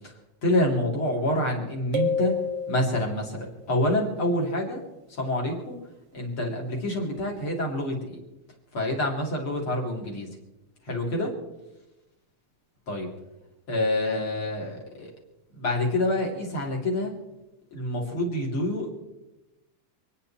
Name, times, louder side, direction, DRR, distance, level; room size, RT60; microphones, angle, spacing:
voice 1, 0.4-2.3 2.7-4.8 5.2-5.8 6.1-8.2 8.7-10.3 10.9-11.3 12.9-13.1 13.7-15.1 15.5-17.1 17.7-18.9, left 1 dB, 35° left, -1 dB, 3.8 m, -27 dB
sound 1, 1.9-3.4, left 5 dB, 60° right, 2.4 m, -29 dB
27.5 x 10.5 x 4.4 m, 0.99 s
omnidirectional pair, 4.4 m